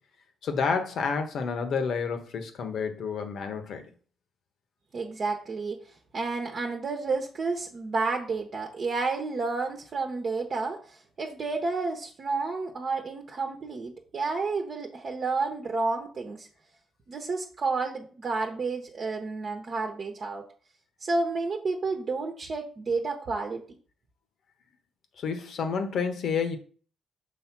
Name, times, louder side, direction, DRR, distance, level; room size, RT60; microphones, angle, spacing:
voice 1, 0.4-3.9 25.2-26.6, left 5 dB, 65° left, 1.2 m, -29 dB
voice 2, 4.9-5.8 6.1-16.5 17.1-20.4 21.0-23.6, right 3 dB, 45° right, 1.1 m, -30 dB
6.4 x 3.3 x 6.0 m
cardioid pair, 90°, 0 cm